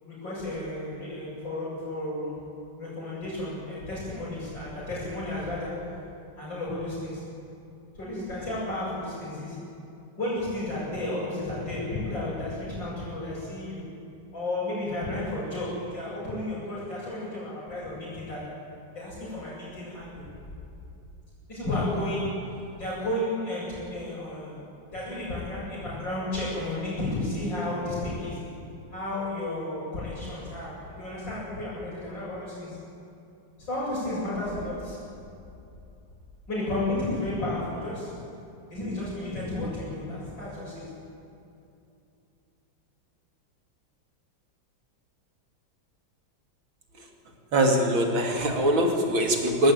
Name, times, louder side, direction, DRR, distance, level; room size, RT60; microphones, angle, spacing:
voice 1, 0.0-2.5 2.8-5.9 6.3-7.3 7.9-9.6 10.2-13.8 14.3-18.5 18.9-20.2 21.5-22.5 22.8-24.6 24.9-28.4 28.9-32.8 33.6-35.0 36.5-38.1 38.7-40.9, left 1 dB, 65° left, -9 dB, 8.0 m, -32 dB
voice 2, 47.5-49.7, right 1 dB, 75° right, 1 dB, 3.7 m, -22 dB
23.5 x 19.5 x 9.1 m, 2.7 s
omnidirectional pair, 2.2 m